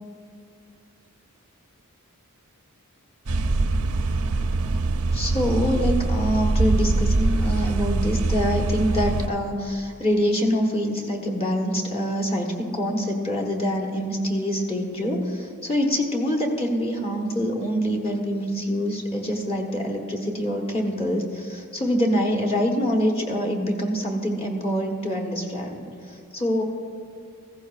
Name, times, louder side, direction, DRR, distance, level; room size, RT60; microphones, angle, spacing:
sound 1, 3.3-9.3, right 2 dB, 75° right, 0.7 m, -23 dB
voice 1, 5.1-26.6, equal, 25° left, 1 dB, 1.2 m, -25 dB
17.0 x 15.0 x 2.4 m, 2.3 s
head